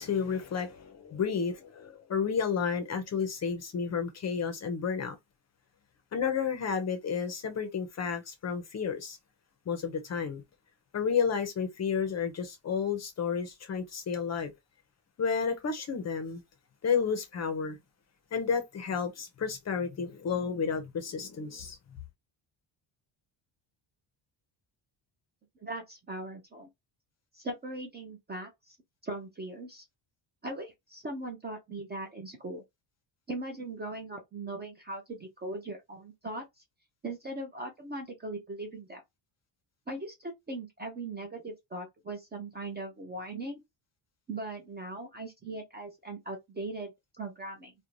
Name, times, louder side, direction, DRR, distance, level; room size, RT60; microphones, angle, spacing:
voice 1, 0.0-5.2 6.1-9.2 9.7-10.4 10.9-14.5 15.2-16.4 16.8-17.8 18.3-21.8, left 6 dB, 35° left, 0.5 m, -31 dB
voice 2, 25.6-26.7 27.3-28.8 29.0-29.8 30.4-32.6 33.3-36.4 37.0-39.0 39.9-43.6 44.3-47.7, right 2 dB, 25° right, 0.4 m, -39 dB
2.5 x 2.1 x 3.0 m
cardioid pair, 175°, 48 cm